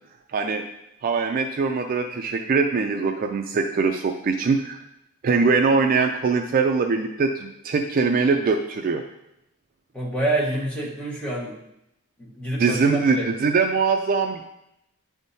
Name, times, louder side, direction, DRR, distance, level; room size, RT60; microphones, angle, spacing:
voice 1, 0.3-0.6 1.0-4.8 5.2-9.0 12.6-14.4, right 4 dB, 40° right, 4 dB, 0.3 m, -22 dB
voice 2, 9.9-11.6 12.2-13.3, right 1 dB, 5° left, -6 dB, 1.3 m, -27 dB
9.8 x 3.6 x 2.7 m, 0.83 s
head